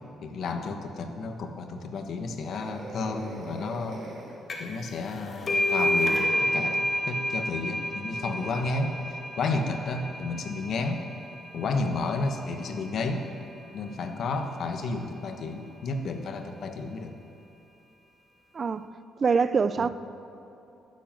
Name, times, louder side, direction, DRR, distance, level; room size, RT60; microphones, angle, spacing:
voice 1, 0.2-4.0 4.6-11.1 11.5-13.3 13.7-17.2 19.8-19.9, left 3 dB, 65° left, 1.3 m, -32 dB
sound 1, 2.4-4.4 6.3-6.4 8.0-8.8, right 2 dB, 60° right, 3.5 m, -43 dB
sound 2, 4.5-4.8 5.1-12.4, equal, 35° left, 2.1 m, -30 dB
voice 2, 18.5-18.9 19.2-19.9, right 5 dB, 40° right, 0.5 m, -24 dB
12.5 x 7.9 x 9.0 m
cardioid pair, 90°, 0 cm